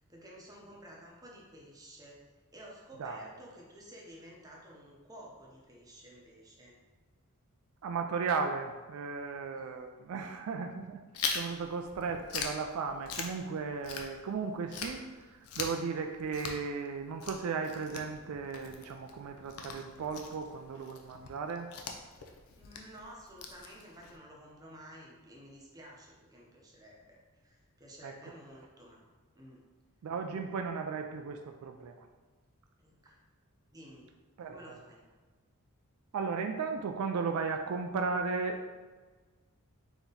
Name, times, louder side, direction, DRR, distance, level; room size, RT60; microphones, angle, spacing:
voice 1, 0.1-6.8 9.5-9.7 22.6-29.0 29.3-29.6 32.8-33.2 33.7-34.1 34.5-35.0, equal, 15° right, -3 dB, 0.8 m, -52 dB
voice 2, 7.8-11.0 11.3-21.7 28.0-28.1 30.0-32.0 34.4-34.8 36.1-38.7, right 5 dB, 70° right, 4 dB, 0.3 m, -35 dB
Chewing mastication, 11.1-14.4 14.7-24.2, left 5 dB, 70° left, 0.5 m, -41 dB
4.0 x 2.9 x 3.8 m, 1.3 s
head